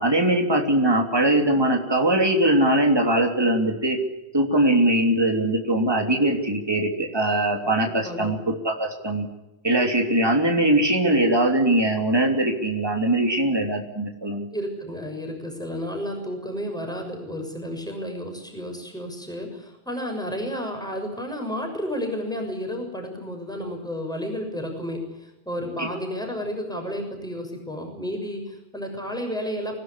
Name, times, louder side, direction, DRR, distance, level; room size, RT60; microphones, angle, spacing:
voice 1, 0.0-4.0 4.3-9.3 9.6-14.5 25.8-25.9, right 1 dB, 20° right, 2 dB, 3.3 m, -21 dB
voice 2, 8.0-8.4 14.5-29.8, equal, 5° left, 3 dB, 6.8 m, -32 dB
26.0 x 18.0 x 9.9 m, 0.96 s
omnidirectional pair, 1.1 m